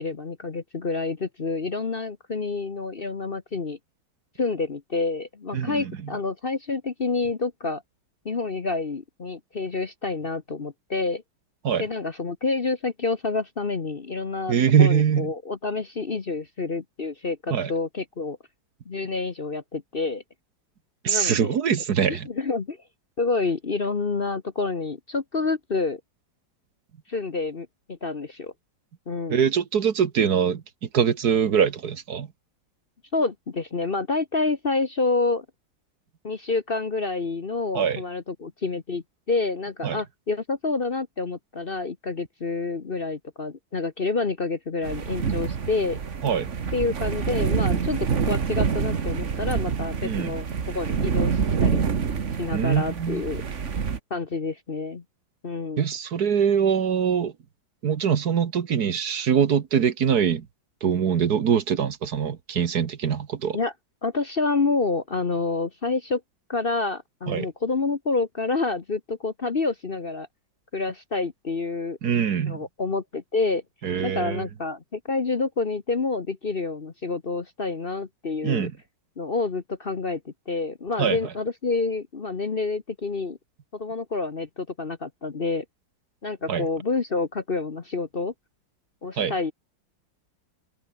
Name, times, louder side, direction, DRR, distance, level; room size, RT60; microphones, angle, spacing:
voice 1, 0.0-3.8 4.4-7.8 8.2-11.2 11.8-18.4 18.9-20.2 21.1-21.6 22.1-22.8 23.2-26.0 27.1-28.5 29.1-29.5 33.1-35.4 36.2-46.0 46.7-50.5 50.7-51.8 52.4-53.4 54.1-55.0 55.4-55.8 63.5-63.7 64.0-66.2 66.5-70.3 70.7-72.0 72.5-73.6 74.0-78.7 79.2-83.4 83.7-85.6 86.2-88.3 89.0-89.5, left 3 dB, 35° left, 1.2 m, -28 dB
voice 2, 5.5-6.1 11.6-11.9 14.5-15.3 17.5-17.7 21.0-22.3 29.3-32.3 37.7-38.0 39.8-40.0 46.2-46.5 50.0-50.4 52.5-53.2 55.8-57.3 57.8-60.5 60.8-63.6 67.3-67.5 72.0-72.6 73.8-74.5 78.4-78.7 81.0-81.2 86.5-86.7 89.2-89.4, right 7 dB, 60° right, 1.8 m, -23 dB
sound 1, 44.8-54.0, right 6 dB, 45° right, 1.7 m, -26 dB
omnidirectional pair, 2.0 m